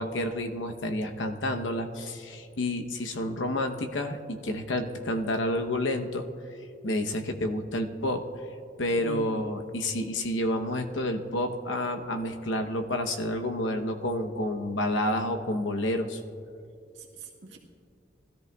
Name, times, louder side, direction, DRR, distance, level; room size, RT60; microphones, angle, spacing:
voice 1, 0.0-6.3 6.8-8.2 8.8-16.2, left 1 dB, 90° left, 5 dB, 0.9 m, -29 dB
voice 2, 8.9-9.3 17.0-17.6, right 2 dB, 70° right, -2 dB, 1.8 m, -41 dB
20.0 x 13.5 x 2.3 m, 2.5 s
head